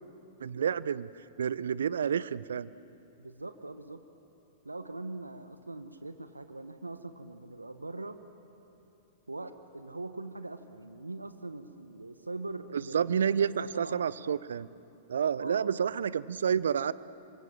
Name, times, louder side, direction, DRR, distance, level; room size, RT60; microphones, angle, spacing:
voice 1, 0.4-1.1 1.4-2.7 12.7-14.7 15.1-16.9, right 7 dB, 70° right, 18 dB, 0.6 m, -29 dB
voice 2, 3.2-4.0 4.6-8.2 9.3-14.0 15.4-15.9, right 2 dB, 85° right, 10 dB, 1.1 m, -42 dB
27.5 x 24.0 x 7.6 m, 2.8 s
figure-of-eight pair, 100°, 0 cm